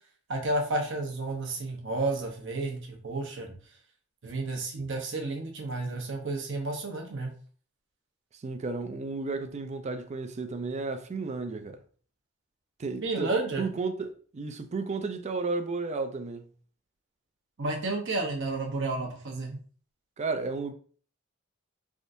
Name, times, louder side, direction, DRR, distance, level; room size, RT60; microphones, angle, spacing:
voice 1, 0.3-3.6 4.2-7.3 13.0-13.6 17.6-19.6, right 2 dB, 60° right, 0.8 m, -31 dB
voice 2, 8.3-11.8 12.8-16.5 20.2-20.7, right 3 dB, 35° right, 0.4 m, -33 dB
3.5 x 2.5 x 2.6 m
head